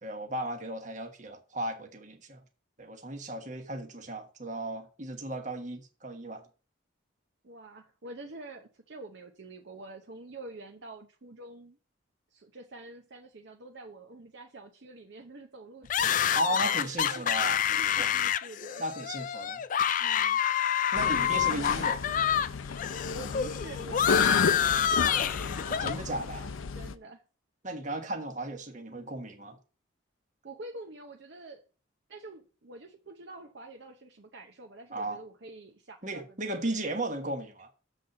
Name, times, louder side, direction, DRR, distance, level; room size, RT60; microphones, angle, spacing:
voice 1, 0.0-2.4 2.8-6.4 16.3-17.6 18.0-18.1 18.8-19.6 20.9-22.0 25.7-26.5 27.6-29.6 34.9-35.2 36.0-37.7, right 1 dB, 40° right, 1.3 m, -35 dB
voice 2, 7.4-11.8 12.3-18.8 20.0-20.4 23.1-25.4 26.7-27.2 30.4-31.6 32.1-36.4 36.6-36.8, right 2 dB, 60° right, 0.8 m, -47 dB
sound 1, 15.9-22.5 22.8-25.9, left 9 dB, 40° left, 0.3 m, -27 dB
sound 2, 20.9-26.9, left 5 dB, 90° left, 0.5 m, -32 dB
7.3 x 4.1 x 6.5 m
head